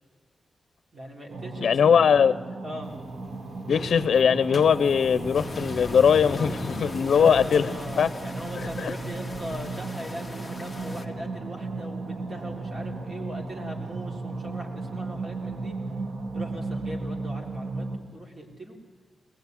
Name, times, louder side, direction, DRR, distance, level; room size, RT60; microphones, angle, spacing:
voice 1, 0.9-2.1 2.6-2.9 7.1-15.7 16.3-18.8, equal, 40° right, 1 dB, 4.1 m, -40 dB
sound 1, 1.3-18.0, right 3 dB, 75° right, 1.9 m, -35 dB
voice 2, 1.6-2.4 3.7-8.1 8.6-8.9, left 7 dB, 80° left, 15 dB, 0.6 m, -21 dB
sound 2, 2.8-8.2, left 3 dB, 30° left, 1.1 m, -39 dB
sound 3, 5.3-11.1, left 2 dB, 5° left, 1.7 m, -42 dB
21.0 x 20.0 x 9.4 m, 1.5 s
wide cardioid pair, 125°, 0 cm